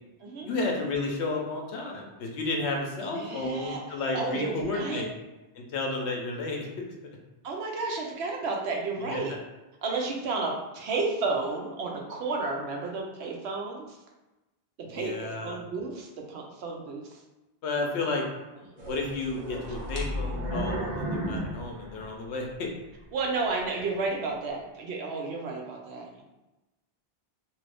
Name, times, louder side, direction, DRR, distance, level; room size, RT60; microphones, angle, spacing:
voice 1, 0.4-5.1 5.6-6.7 9.0-9.2 14.9-15.6 17.6-18.2 18.8-22.7, left 3 dB, 85° left, 1 dB, 0.9 m, -32 dB
voice 2, 3.0-5.0 7.4-9.3 9.8-14.0 14.9-17.2 23.1-26.2, right 3 dB, 80° right, 0 dB, 0.9 m, -32 dB
sound 1, 18.8-22.5 23.0-23.1 23.7-23.8, equal, 45° right, 0.7 m, -33 dB
2.7 x 2.5 x 3.3 m, 1.0 s
omnidirectional pair, 1.1 m